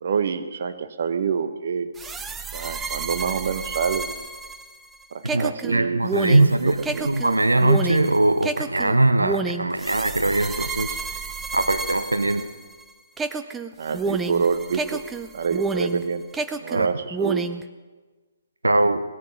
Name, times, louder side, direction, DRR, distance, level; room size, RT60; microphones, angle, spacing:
voice 1, 0.0-1.9 2.5-4.0 5.1-7.1 13.8-15.0 15.3-16.2 16.6-17.5, right 6 dB, 55° right, 11 dB, 0.8 m, -27 dB
sound 1, 2.0-12.8 13.2-16.0 16.3-17.6, right 4 dB, 10° right, 0.6 m, -30 dB
voice 2, 5.2-6.8 7.0-11.0 11.5-12.5 16.7-16.9 18.6-19.0, right 2 dB, 85° right, 10 dB, 0.8 m, -21 dB
17.5 x 10.5 x 6.2 m, 1.3 s
figure-of-eight pair, 130°, 0 cm